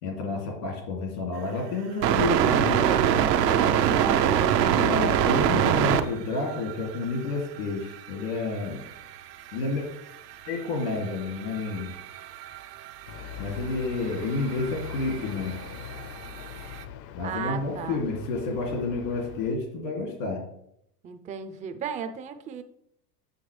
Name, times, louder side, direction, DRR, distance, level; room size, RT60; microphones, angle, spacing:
voice 1, 0.0-2.9 4.7-8.8 9.5-9.9 10.5-12.0 13.4-15.6 17.1-20.4, left 3 dB, 80° left, 1 dB, 2.5 m, -30 dB
sound 1, 2.0-6.0 6.4-7.3 7.6-7.7 7.9-9.8 10.1-16.8, right 9 dB, 85° right, 0.7 m, -25 dB
voice 2, 4.0-4.6 17.2-18.0 21.0-22.6, right 7 dB, 15° right, 8 dB, 0.4 m, -35 dB
sound 2, 13.1-19.5, left 8 dB, 50° left, 0.7 m, -41 dB
7.9 x 6.3 x 3.2 m, 0.75 s
hypercardioid pair, 100°, 48 cm